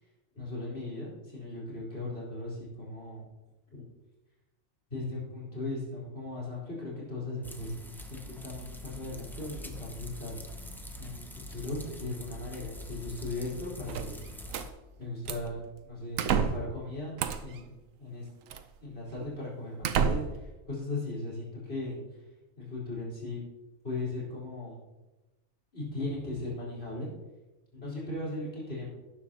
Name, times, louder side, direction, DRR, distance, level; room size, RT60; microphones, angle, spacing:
voice 1, 0.3-3.2 3.7-3.8 4.9-7.8 8.0-10.7 11.0-14.3 15.0-15.6 15.9-17.7 18.0-18.3 18.8-22.0 22.6-23.4 23.8-24.8 25.7-27.1 27.7-28.9, left 2 dB, 50° left, -6 dB, 4.6 m, -38 dB
sound 1, 7.4-14.7, equal, ahead, 0.5 m, -44 dB
sound 2, 13.9-14.7 15.2-15.6 16.2-16.7 17.2-17.6 18.5-18.6 19.2-19.3 19.8-20.5, right 7 dB, 80° right, 1.1 m, -30 dB
12.0 x 10.0 x 2.9 m, 1.1 s
omnidirectional pair, 1.4 m